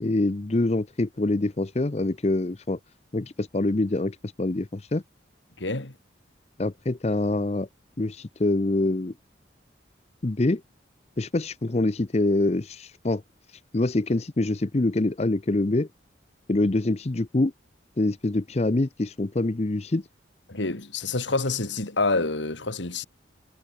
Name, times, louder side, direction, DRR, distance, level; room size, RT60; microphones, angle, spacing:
voice 1, 0.0-2.8 3.1-5.0 6.6-7.7 8.0-9.1 10.2-10.6 11.2-13.2 13.5-15.9 16.5-17.5 18.0-20.1, left 2 dB, 35° left, 0.6 m, -25 dB
voice 2, 5.6-5.9 20.5-23.0, left 3 dB, 75° left, 2.3 m, -27 dB
head